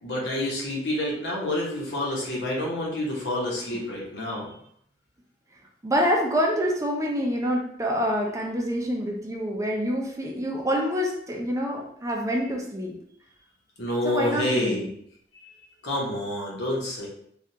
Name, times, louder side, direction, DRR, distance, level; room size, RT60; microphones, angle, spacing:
voice 1, 0.0-4.5 13.8-14.9 15.4-15.5 15.8-17.1, left 1 dB, 80° left, -3 dB, 1.0 m, -28 dB
voice 2, 5.8-12.9 14.0-14.9, equal, 20° right, 0 dB, 0.5 m, -26 dB
3.4 x 2.4 x 2.8 m, 0.68 s
head